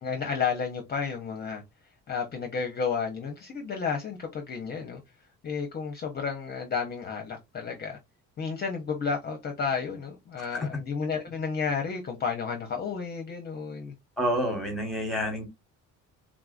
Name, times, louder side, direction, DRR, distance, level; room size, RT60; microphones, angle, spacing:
voice 1, 0.0-1.6 2.1-5.0 5.4-8.0 8.4-13.9, left 5 dB, 30° left, 0.6 m, -32 dB
voice 2, 10.4-10.7 14.2-15.4, equal, ahead, 1.1 m, -29 dB
3.6 x 2.4 x 2.4 m
cardioid pair, 125°, 31 cm